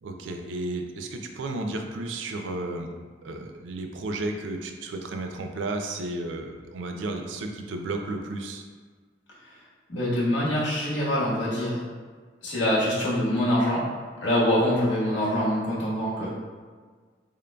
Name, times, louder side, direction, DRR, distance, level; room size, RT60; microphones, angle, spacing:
voice 1, 0.0-2.9 3.2-8.6, right 2 dB, 90° right, 4 dB, 0.4 m, -33 dB
voice 2, 9.9-11.8 12.4-13.9 14.2-16.3, equal, 80° left, -7 dB, 1.3 m, -24 dB
3.7 x 3.7 x 2.2 m, 1.5 s
head